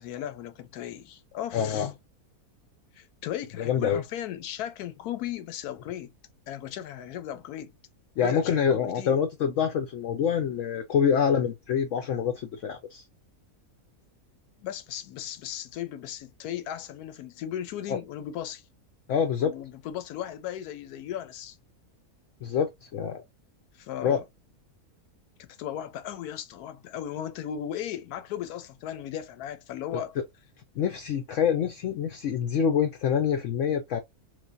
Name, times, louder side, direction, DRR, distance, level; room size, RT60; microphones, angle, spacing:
voice 1, 0.0-1.9 3.0-6.1 6.5-7.7 8.1-9.2 14.6-18.6 19.4-21.6 23.8-24.2 25.4-30.2, left 10 dB, 85° left, 1.1 m, -36 dB
voice 2, 1.5-1.9 3.6-4.0 8.2-13.0 17.9-18.0 19.1-19.5 22.4-23.2 24.0-24.2 30.8-34.0, left 7 dB, 65° left, 0.8 m, -26 dB
3.4 x 3.1 x 2.5 m
omnidirectional pair, 1.6 m